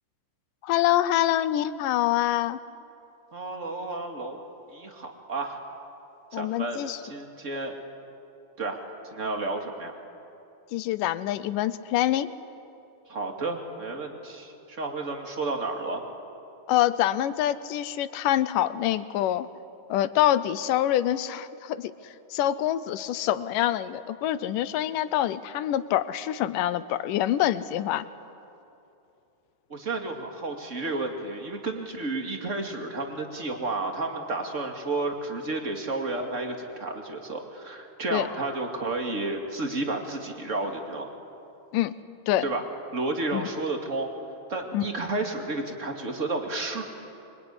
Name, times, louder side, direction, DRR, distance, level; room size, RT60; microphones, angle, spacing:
voice 1, 0.6-2.6 6.3-7.0 10.7-12.3 16.7-19.5 19.9-21.9 22.3-28.1 38.1-38.3 41.7-41.9 42.3-42.5 43.3-43.5 44.7-44.9, left 12 dB, 80° left, 14 dB, 2.4 m, -25 dB
voice 2, 3.3-4.4 4.7-5.6 6.3-7.7 8.6-8.8 9.1-9.9 13.1-16.0 29.7-41.1 42.4-42.6 42.9-44.1 44.5-46.8, right 2 dB, 25° right, 3 dB, 2.4 m, -31 dB
25.5 x 24.0 x 9.8 m, 2.7 s
omnidirectional pair, 3.8 m